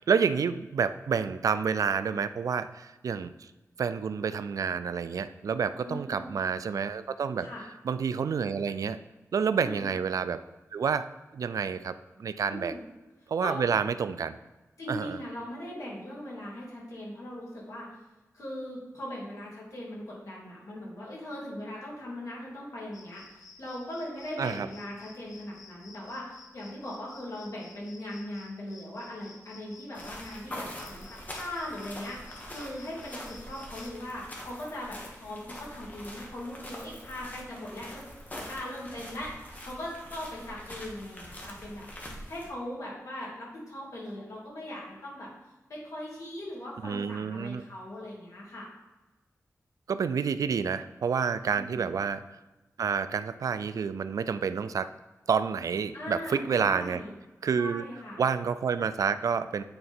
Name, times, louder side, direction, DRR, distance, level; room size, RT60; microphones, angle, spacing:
voice 1, 0.0-3.5 3.8-7.5 7.8-9.0 9.3-10.4 10.7-11.1 11.3-12.7 13.3-14.4 14.9-15.2 24.4-24.7 46.8-47.6 49.9-52.2 52.8-54.9 55.3-57.0 57.4-57.9 58.2-59.6, right 6 dB, 75° right, 12 dB, 0.3 m, -29 dB
voice 2, 5.8-6.3 7.4-7.6 9.5-9.8 12.5-12.8 13.4-13.6 14.8-18.0 18.3-38.0 38.3-39.3 39.6-41.9 42.3-45.3 45.7-48.7 51.4-51.8 55.9-57.1 57.6-58.2, left 1 dB, 65° left, -5 dB, 2.6 m, -39 dB
sound 1, 22.9-33.9, left 3 dB, 85° left, 1.0 m, -54 dB
sound 2, 29.9-42.5, left 1 dB, 30° left, 1.2 m, -44 dB
8.8 x 4.0 x 4.3 m, 1.1 s
wide cardioid pair, 145°, 6 cm